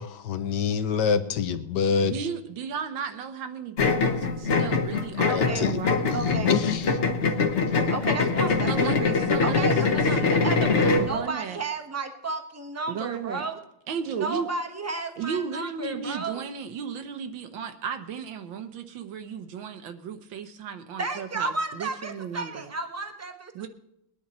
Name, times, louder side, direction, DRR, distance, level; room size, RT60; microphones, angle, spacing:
voice 1, 0.3-2.2 5.3-6.9, left 6 dB, 70° left, 10 dB, 1.3 m, -26 dB
voice 2, 2.0-6.1 8.7-9.0 9.3-9.7 11.0-11.6 12.9-13.5 13.9-14.5 15.2-22.7 23.5-23.7, right 7 dB, 80° right, 8 dB, 1.7 m, -34 dB
sound 1, 3.8-11.1, left 4 dB, 45° left, 1.0 m, -23 dB
voice 3, 5.3-5.7 6.1-6.5 7.9-13.6 14.2-16.4 21.0-23.7, right 3 dB, 15° right, 5 dB, 0.6 m, -32 dB
20.5 x 10.0 x 4.2 m, 0.79 s
omnidirectional pair, 2.1 m